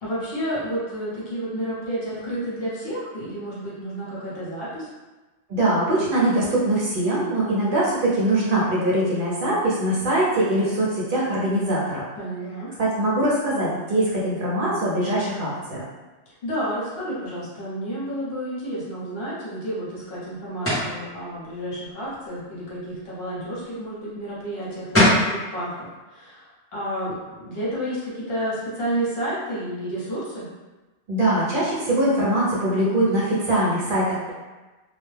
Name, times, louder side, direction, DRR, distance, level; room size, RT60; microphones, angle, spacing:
voice 1, 0.0-4.9 12.2-12.7 16.4-30.5, right 1 dB, 60° left, -8 dB, 1.0 m, -31 dB
voice 2, 5.5-12.0 12.8-15.8 31.1-34.3, right 1 dB, 55° right, -6 dB, 0.7 m, -22 dB
sound 1, 20.6-21.0 24.6-24.7 24.9-25.3, left 1 dB, 15° left, 0.6 m, -18 dB
2.2 x 2.1 x 3.2 m, 1.2 s
omnidirectional pair, 1.2 m